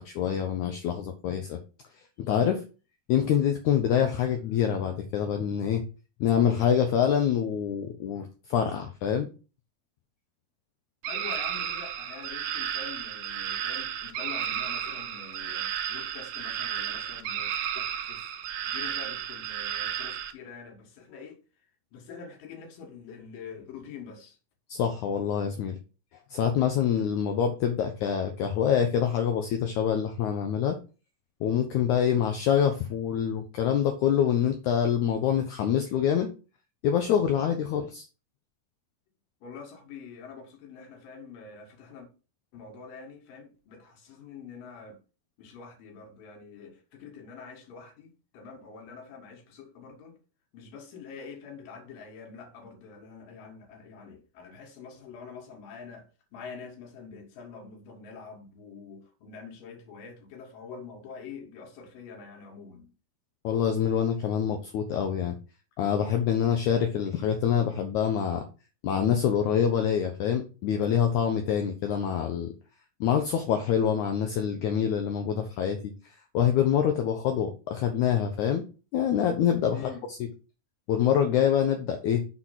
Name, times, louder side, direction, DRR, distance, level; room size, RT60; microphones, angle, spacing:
voice 1, 0.0-1.6 2.2-2.6 3.1-5.8 6.2-9.3 24.7-25.8 26.3-30.8 31.4-36.3 36.8-38.1 63.4-65.4 65.8-68.4 68.8-72.5 73.0-75.8 76.3-78.6 78.9-79.8 80.9-82.3, left 8 dB, 80° left, 1.7 m, -25 dB
sound 1, 11.0-20.3, right 9 dB, 80° right, 2.4 m, -33 dB
voice 2, 11.1-21.4 21.9-24.4 39.4-42.1 42.5-45.0 45.4-50.2 50.5-62.9 79.7-80.1, left 5 dB, 65° left, 3.2 m, -45 dB
6.4 x 4.1 x 5.7 m
omnidirectional pair, 4.5 m